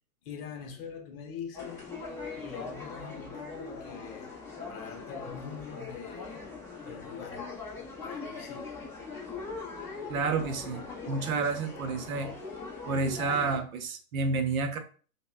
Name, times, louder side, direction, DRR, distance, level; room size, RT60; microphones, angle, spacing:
voice 1, 0.2-1.9 2.4-4.3 4.7-6.4 6.8-7.5 8.0-8.9, left 6 dB, 40° left, 0.7 m, -43 dB
sound 1, 1.5-13.6, left 4 dB, 5° left, 0.5 m, -41 dB
voice 2, 10.1-12.3 12.9-14.8, right 4 dB, 70° right, 0.8 m, -30 dB
5.2 x 2.1 x 2.3 m
hypercardioid pair, 140°, 44 cm